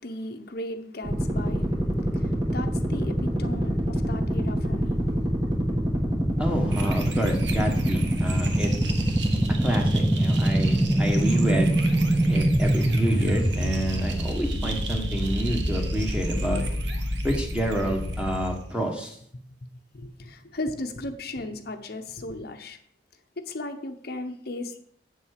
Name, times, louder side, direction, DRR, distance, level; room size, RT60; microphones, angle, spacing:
voice 1, 0.0-1.7 2.1-5.0 5.9-6.0 19.9-22.8 23.4-24.8, left 2 dB, 55° left, 6 dB, 0.8 m, -36 dB
sound 1, 1.0-18.4, right 1 dB, 25° right, 1.6 m, -25 dB
voice 2, 6.4-9.2 9.6-11.7 12.3-16.6 17.2-19.2, right 1 dB, 5° right, 1 dB, 1.5 m, -29 dB
sound 2, 6.7-18.7, right 1 dB, 75° right, 1.3 m, -34 dB
7.9 x 7.3 x 6.6 m, 0.66 s
head